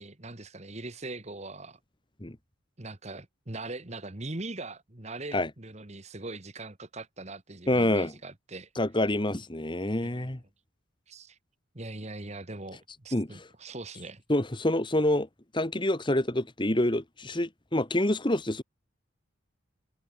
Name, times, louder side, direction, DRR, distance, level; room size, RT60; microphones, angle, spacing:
voice 1, 0.0-1.8 2.8-8.7 10.0-10.3 11.1-11.4 11.7-14.2, right 2 dB, 35° right, 1.6 m, -41 dB
voice 2, 7.7-8.1 8.8-10.4 13.1-13.5 14.3-15.3 15.5-18.6, left 1 dB, 25° left, 1.4 m, -27 dB
head